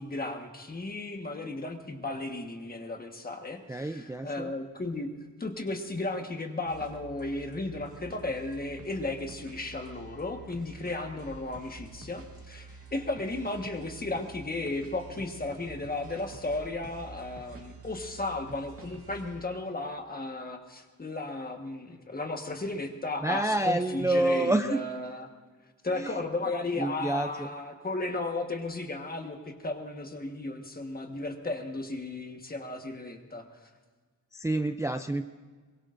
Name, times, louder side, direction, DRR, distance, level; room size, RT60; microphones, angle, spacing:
voice 1, 0.0-5.1 5.4-25.3 25.8-33.7, left 2 dB, 30° left, 4 dB, 1.4 m, -35 dB
voice 2, 3.7-4.5 23.2-24.9 25.9-26.2 26.8-27.5 34.3-35.2, right 2 dB, 10° right, 7 dB, 0.4 m, -28 dB
sound 1, 6.6-19.4, right 3 dB, 45° right, 1.9 m, -48 dB
23.0 x 21.5 x 2.6 m, 1.4 s
wide cardioid pair, 180°, 33 cm